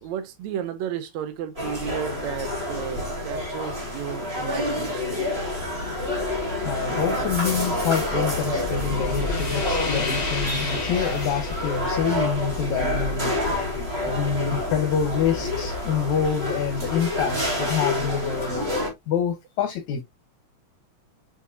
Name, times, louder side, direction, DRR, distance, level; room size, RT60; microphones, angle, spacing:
voice 1, 0.0-5.2, right 10 dB, 75° right, 2.0 m, -33 dB
sound 1, 1.6-18.9, left 1 dB, 20° right, 3.3 m, -28 dB
sound 2, 4.8-18.6, left 2 dB, 35° left, 0.6 m, -35 dB
voice 2, 6.6-13.4 14.1-18.6 19.1-20.0, left 7 dB, 80° left, 2.5 m, -26 dB
8.2 x 5.1 x 2.8 m
omnidirectional pair, 3.3 m